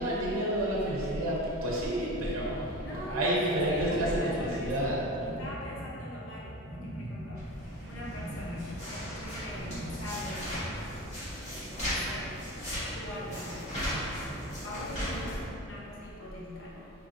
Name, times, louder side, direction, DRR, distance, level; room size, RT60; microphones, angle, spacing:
voice 1, 0.0-5.1, right 1 dB, 80° right, -5 dB, 0.6 m, -30 dB
sound 1, 1.9-10.5, equal, 80° left, 1.5 m, -42 dB
voice 2, 2.7-5.0 5.2-10.7 11.5-12.4 12.7-13.7 14.6-16.9, left 1 dB, 65° left, -5 dB, 0.8 m, -42 dB
sound 2, 7.4-15.4, equal, 35° left, 1.4 m, -37 dB
4.9 x 2.9 x 2.6 m, 2.9 s
head